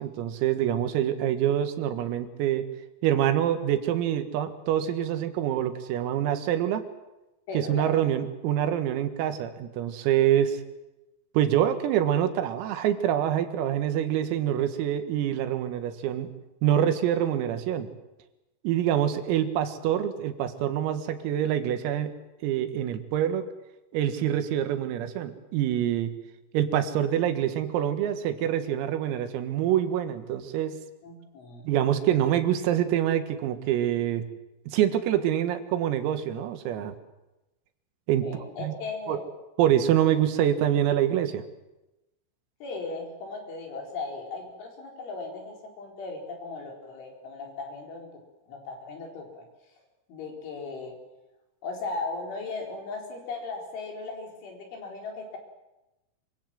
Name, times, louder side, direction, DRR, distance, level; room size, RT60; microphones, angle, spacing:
voice 1, 0.0-2.7 3.0-6.8 7.5-10.6 11.4-16.3 16.6-17.9 18.6-23.4 23.9-26.1 26.5-30.8 31.7-34.2 34.7-37.0 38.1-38.3 38.6-38.8 39.1-39.2 39.6-41.4, right 11 dB, 90° right, 9 dB, 4.4 m, -26 dB
voice 2, 7.5-8.0 31.0-31.7 38.2-39.3 42.6-48.2 48.5-49.4 50.1-50.9 51.6-55.4, left 3 dB, 65° left, 2 dB, 6.7 m, -37 dB
25.5 x 24.5 x 7.7 m, 0.96 s
omnidirectional pair, 5.9 m